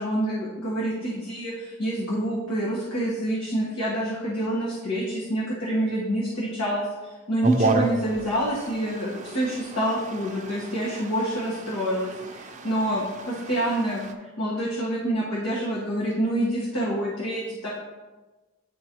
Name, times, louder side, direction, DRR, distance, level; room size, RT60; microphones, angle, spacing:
voice 1, 0.0-6.9 7.3-14.0 14.4-17.7, right 1 dB, 90° left, -6 dB, 1.4 m, -27 dB
sound 1, 7.4-14.1, right 2 dB, 35° right, 0.5 m, -31 dB
10.5 x 3.9 x 3.0 m, 1.2 s
head